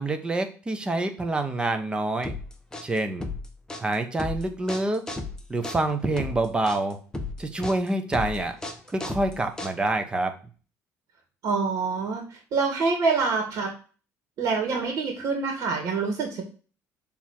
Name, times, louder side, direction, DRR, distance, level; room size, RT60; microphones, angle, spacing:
voice 1, 0.0-2.3 2.8-3.3 3.8-5.0 5.5-7.0 7.4-8.6 8.9-10.3, right 2 dB, 15° right, 7 dB, 1.0 m, -27 dB
sound 1, 2.2-10.1, left 2 dB, 10° left, 1.0 m, -35 dB
voice 2, 11.4-13.7 14.4-16.4, right 4 dB, 60° right, 2 dB, 2.3 m, -26 dB
6.7 x 3.6 x 4.4 m, 0.38 s
cardioid pair, 125°, 6 cm